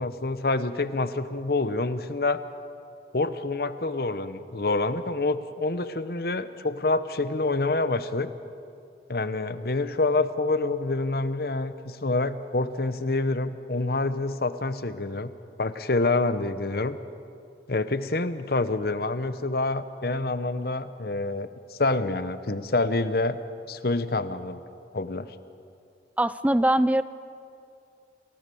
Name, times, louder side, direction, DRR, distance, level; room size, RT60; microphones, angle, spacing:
voice 1, 0.0-2.4 3.1-8.3 9.1-15.3 15.6-17.0 17.7-23.4 23.7-24.6 24.9-25.3, left 2 dB, 55° left, 12 dB, 0.9 m, -27 dB
voice 2, 26.2-27.0, right 1 dB, 10° right, 15 dB, 0.5 m, -21 dB
28.5 x 16.5 x 7.0 m, 2.5 s
head